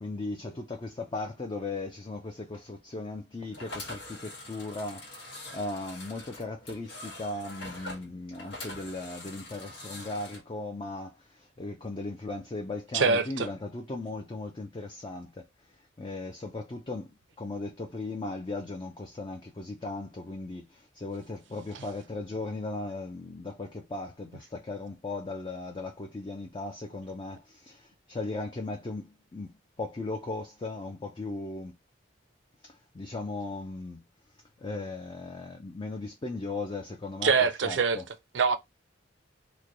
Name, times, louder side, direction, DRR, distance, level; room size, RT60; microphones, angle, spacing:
voice 1, 0.0-31.8 32.6-34.0 34.6-38.1, left 2 dB, 25° left, 0.5 m, -37 dB
sound 1, 3.5-10.4, left 2 dB, 90° left, 1.3 m, -44 dB
voice 2, 12.9-13.5 21.7-21.9 37.2-38.6, right 5 dB, 70° right, 0.5 m, -25 dB
3.1 x 2.2 x 3.8 m
head